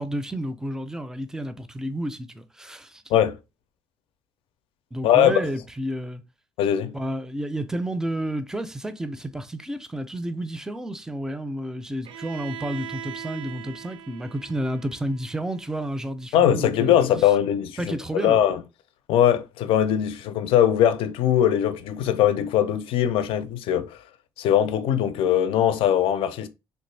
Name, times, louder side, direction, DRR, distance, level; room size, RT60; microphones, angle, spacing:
voice 1, 0.0-3.0 4.9-6.2 6.9-17.0 17.8-18.4, right 1 dB, 5° right, 0.4 m, -31 dB
voice 2, 5.0-5.3 6.6-6.9 16.3-18.6 19.1-24.0 24.4-26.5, left 10 dB, 75° left, 0.4 m, -21 dB
Bowed string instrument, 12.0-15.9, right 9 dB, 70° right, 0.5 m, -40 dB
3.3 x 2.6 x 3.2 m
cardioid pair, 110°, 9 cm